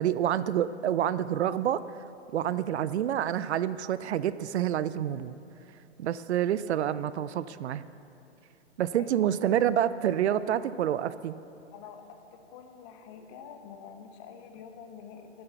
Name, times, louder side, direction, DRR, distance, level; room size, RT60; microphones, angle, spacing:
voice 1, 0.0-1.8 2.3-5.3 6.0-7.8 8.8-11.3, right 10 dB, 70° right, 15 dB, 0.5 m, -28 dB
voice 2, 9.0-9.3 11.7-15.4, left 7 dB, 25° left, 6 dB, 0.7 m, -47 dB
10.5 x 7.8 x 6.8 m, 2.6 s
hypercardioid pair, 150°, 35 cm